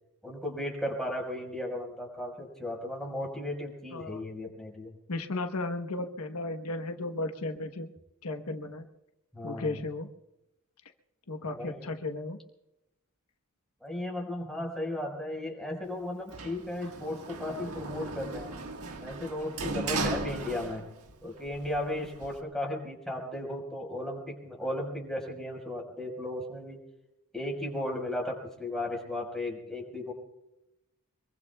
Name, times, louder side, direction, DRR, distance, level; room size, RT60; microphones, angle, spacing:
voice 1, 0.2-4.9 9.3-9.8 11.4-11.9 13.8-18.6 19.0-20.9 21.2-26.8 27.3-30.1, left 1 dB, ahead, -1 dB, 4.9 m, -35 dB
voice 2, 5.1-7.9 8.2-8.8 9.4-10.1 11.3-12.4, left 2 dB, 85° left, 5 dB, 1.1 m, -34 dB
Sliding door, 16.3-21.1 21.5-22.4, right 2 dB, 75° right, 1.6 m, -36 dB
25.5 x 22.5 x 2.3 m, 0.91 s
head